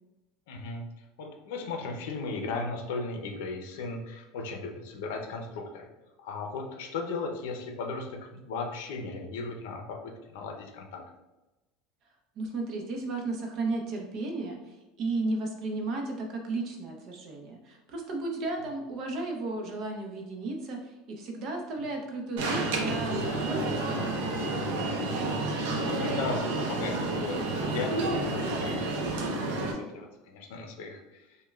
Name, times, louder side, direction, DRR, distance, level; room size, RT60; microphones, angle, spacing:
voice 1, 0.5-5.9 6.2-11.0 25.1-31.4, left 3 dB, 75° left, 3 dB, 0.6 m, -37 dB
voice 2, 12.4-24.4, right 2 dB, 40° right, 1 dB, 0.6 m, -34 dB
Alarm, 22.4-29.7, right 2 dB, 85° right, 0.6 m, -30 dB
5.2 x 2.2 x 2.3 m, 1.1 s
cardioid pair, 170°, 0 cm